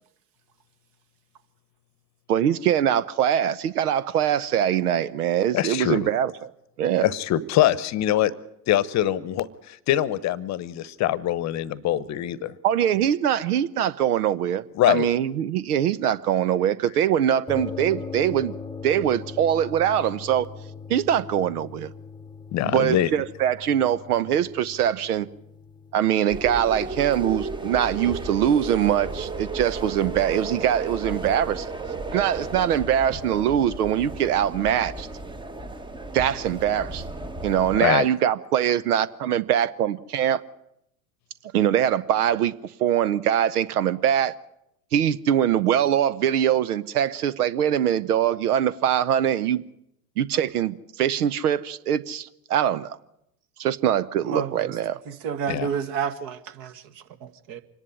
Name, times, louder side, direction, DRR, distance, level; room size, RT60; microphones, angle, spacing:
voice 1, 2.3-6.5 6.8-7.1 12.6-18.5 18.8-20.5 20.9-21.9 22.7-25.3 25.9-31.7 32.1-35.1 36.1-37.0 37.4-40.4 41.5-42.5 42.8-44.4 44.9-49.6 50.2-53.0 53.6-55.0, right 10 dB, 70° right, 0.9 m, -23 dB
voice 2, 5.5-6.1 7.0-8.3 8.7-12.5 14.8-15.1 22.5-23.1 37.8-38.0 55.5-55.7, left 12 dB, 35° left, 1.0 m, -23 dB
sound 1, 17.5-26.6, left 5 dB, 10° left, 1.0 m, -40 dB
sound 2, 26.3-37.8, right 3 dB, 10° right, 1.0 m, -34 dB
voice 3, 54.2-54.8 55.1-57.6, right 7 dB, 45° right, 1.8 m, -31 dB
25.5 x 11.0 x 9.9 m
hypercardioid pair, 90°, 46 cm